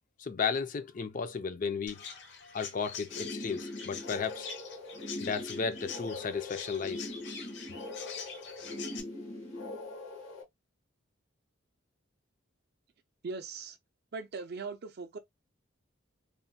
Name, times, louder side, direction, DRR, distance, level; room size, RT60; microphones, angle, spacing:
voice 1, 0.2-2.0 2.5-4.5 5.2-7.1, left 5 dB, 40° left, 0.4 m, -34 dB
Chirp tweet, 1.9-9.0, left 6 dB, 60° left, 0.8 m, -45 dB
sound 1, 3.1-10.4, left 2 dB, 85° left, 1.2 m, -42 dB
voice 2, 13.2-13.8 14.1-15.2, right 4 dB, 50° right, 0.4 m, -39 dB
3.0 x 2.1 x 2.7 m
head